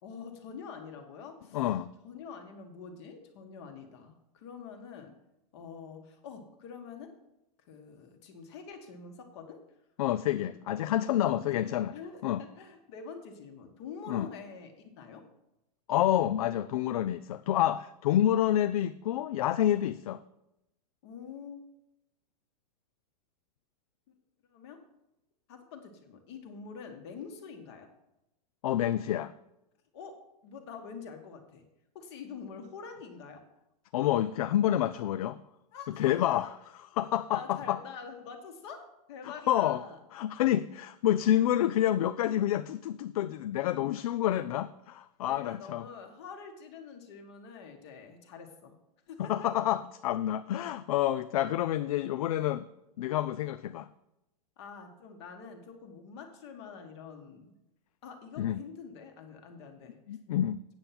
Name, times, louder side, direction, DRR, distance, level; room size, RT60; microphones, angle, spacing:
voice 1, 0.0-1.6 2.0-5.1 5.5-7.1 7.7-9.6 10.3-10.7 11.1-15.2 21.0-21.6 24.5-24.8 25.5-27.9 29.9-31.6 31.9-33.4 35.7-36.5 37.3-40.0 45.2-48.8 49.1-49.7 54.6-57.5 58.0-60.0, left 6 dB, 40° left, 5 dB, 1.5 m, -46 dB
voice 2, 1.5-1.9 10.0-11.9 12.2-12.4 14.1-14.3 15.9-20.2 28.6-29.3 33.9-35.4 36.0-36.5 36.8-37.8 39.5-39.8 40.1-45.8 49.2-52.7 53.0-53.9 58.4-58.6 60.1-60.6, left 12 dB, 65° left, 13 dB, 0.4 m, -28 dB
8.9 x 7.0 x 5.8 m, 0.89 s
supercardioid pair, 170°, 20 cm